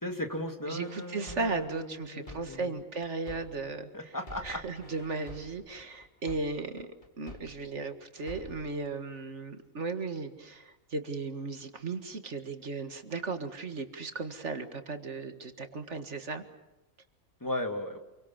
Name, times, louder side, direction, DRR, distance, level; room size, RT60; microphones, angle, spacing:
voice 1, 0.0-2.8 3.9-4.6 17.4-18.0, left 1 dB, 15° left, 5 dB, 2.2 m, -36 dB
voice 2, 0.7-4.2 4.4-6.9 7.2-16.4, right 3 dB, 60° right, 7 dB, 2.1 m, -36 dB
sound 1, 0.8-3.8 4.2-7.8 8.2-8.8, left 1 dB, 35° left, 3.5 m, -49 dB
28.0 x 23.5 x 7.2 m, 0.99 s
omnidirectional pair, 1.4 m